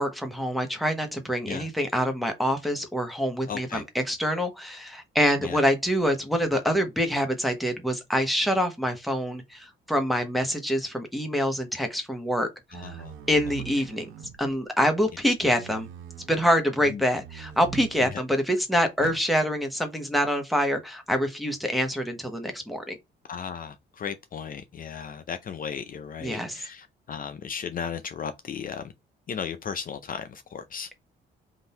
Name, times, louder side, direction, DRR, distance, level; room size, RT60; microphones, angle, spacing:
voice 1, 0.0-12.5 12.8-14.1 14.4-15.9 16.3-23.0 26.2-26.6, equal, ahead, 1.1 m, -26 dB
voice 2, 3.5-3.8 5.4-5.6 12.7-13.1 16.9-17.0 18.1-18.2 23.3-28.9 29.3-30.9, left 7 dB, 45° left, 0.5 m, -35 dB
sound 1, 12.7-14.6 15.4-16.3 17.1-18.2 19.0-19.2, right 9 dB, 90° right, 0.8 m, -42 dB
3.8 x 2.6 x 4.2 m
cardioid pair, 90°, 20 cm